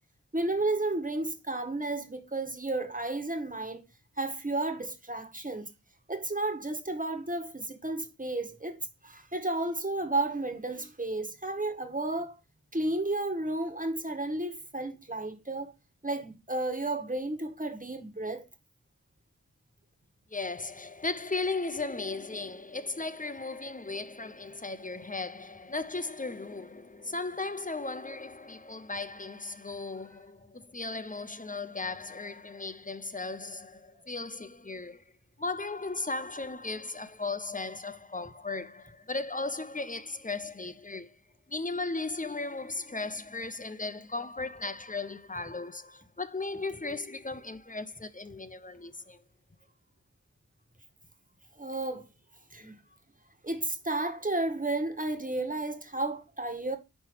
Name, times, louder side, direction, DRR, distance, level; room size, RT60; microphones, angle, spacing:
voice 1, 0.3-3.8 4.2-5.7 6.1-12.3 12.7-15.7 16.0-18.4 51.6-52.1 52.5-52.8 53.4-56.8, right 2 dB, 25° right, 1.8 m, -32 dB
voice 2, 20.3-35.0 35.4-41.2 41.5-49.2, left 3 dB, 25° left, 0.8 m, -36 dB
9.8 x 3.3 x 4.8 m
wide cardioid pair, 45°, 32 cm